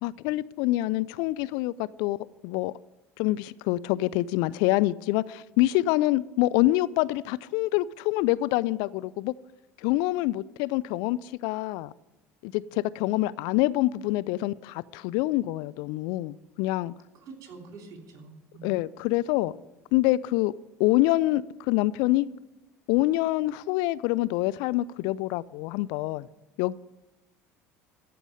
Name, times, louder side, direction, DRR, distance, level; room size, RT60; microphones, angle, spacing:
voice 1, 0.0-2.2 2.4-2.7 3.2-9.3 9.8-11.9 12.4-16.9 18.6-19.5 19.9-20.5 20.8-22.3 22.9-26.3 26.6-26.8, left 17 dB, 65° left, 18 dB, 0.4 m, -26 dB
voice 2, 17.2-18.7, right 4 dB, 50° right, 3 dB, 3.1 m, -46 dB
14.0 x 5.4 x 8.8 m, 0.99 s
hypercardioid pair, 70°, 8 cm